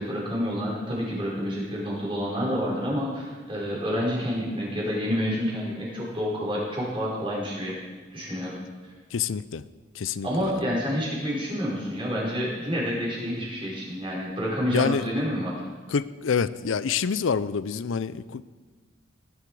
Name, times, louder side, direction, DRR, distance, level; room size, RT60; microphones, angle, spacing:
voice 1, 0.0-7.7 8.1-8.5 10.2-15.6, equal, 25° right, -5 dB, 4.9 m, -28 dB
voice 2, 9.1-9.6 9.9-10.5 14.7-15.0 15.9-18.4, left 6 dB, 85° left, 16 dB, 0.5 m, -27 dB
18.5 x 10.5 x 4.8 m, 1.4 s
head